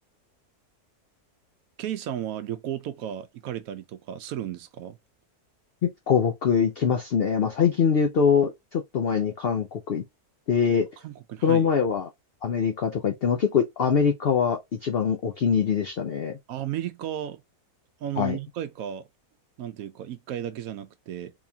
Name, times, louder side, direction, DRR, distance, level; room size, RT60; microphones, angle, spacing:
voice 1, 1.8-5.0 11.0-11.7 16.5-17.4 18.0-19.1 19.6-21.3, right 11 dB, 70° right, 0.9 m, -34 dB
voice 2, 5.8-10.0 10.5-10.9 11.4-12.1 12.4-16.4 18.2-18.4, left 7 dB, 70° left, 0.5 m, -23 dB
3.8 x 3.0 x 2.7 m
omnidirectional pair, 1.6 m